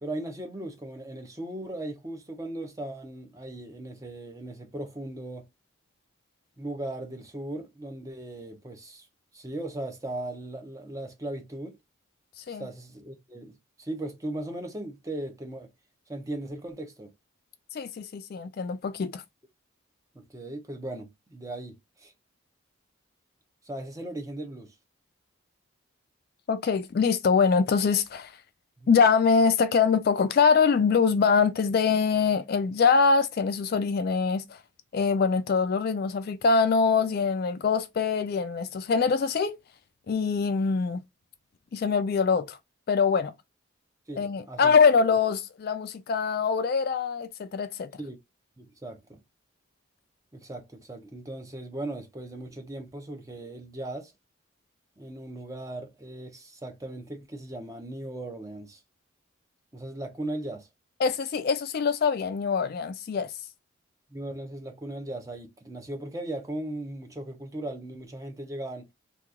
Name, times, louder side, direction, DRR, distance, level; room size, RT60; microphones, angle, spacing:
voice 1, 0.0-5.5 6.6-9.1 9.3-11.8 12.5-15.7 16.1-17.1 20.1-22.1 23.6-24.7 28.8-29.0 44.1-44.8 48.0-48.2 48.6-49.2 50.3-54.1 55.0-58.8 59.7-60.7 64.1-68.9, right 1 dB, 15° right, 0.6 m, -38 dB
voice 2, 17.7-19.2 26.5-28.3 28.9-34.4 34.9-39.6 40.1-41.0 41.7-42.6 42.9-43.3 44.2-47.9 61.0-63.3, left 5 dB, 45° left, 0.3 m, -24 dB
2.8 x 2.3 x 3.5 m
head